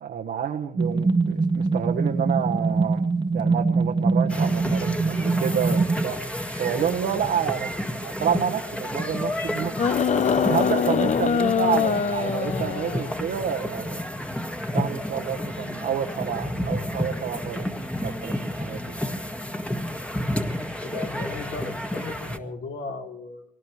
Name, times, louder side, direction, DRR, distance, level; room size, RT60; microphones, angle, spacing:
voice 1, 0.0-3.0 3.3-6.2 6.6-7.7 8.0-9.8 10.5-14.1 14.7-17.6 18.0-19.0, right 8 dB, 70° right, 2 dB, 1.3 m, -29 dB
sound 1, 0.8-6.0, right 4 dB, 25° right, 1.2 m, -23 dB
sound 2, 4.3-22.4, left 1 dB, 5° left, 1.7 m, -31 dB
sound 3, 9.8-13.2 14.3-14.4, left 7 dB, 45° left, 0.7 m, -23 dB
voice 2, 20.8-23.4, left 3 dB, 75° left, 2 dB, 3.0 m, -36 dB
23.5 x 18.0 x 3.2 m, 0.70 s
cardioid pair, 70°, 17 cm